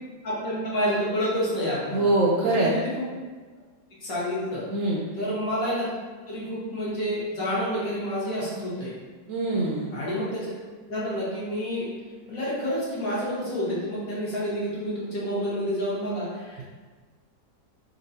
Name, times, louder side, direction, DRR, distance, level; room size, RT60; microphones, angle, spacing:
voice 1, 0.2-2.1 2.4-2.9 4.0-4.6 5.2-5.9 6.3-8.9 9.9-10.5 10.9-11.9 12.3-16.6, equal, 55° left, -8 dB, 1.7 m, -29 dB
voice 2, 1.9-2.7 4.7-5.0 9.3-9.9, right 2 dB, 70° right, -4 dB, 0.8 m, -23 dB
4.0 x 3.7 x 2.8 m, 1.4 s
omnidirectional pair, 1.8 m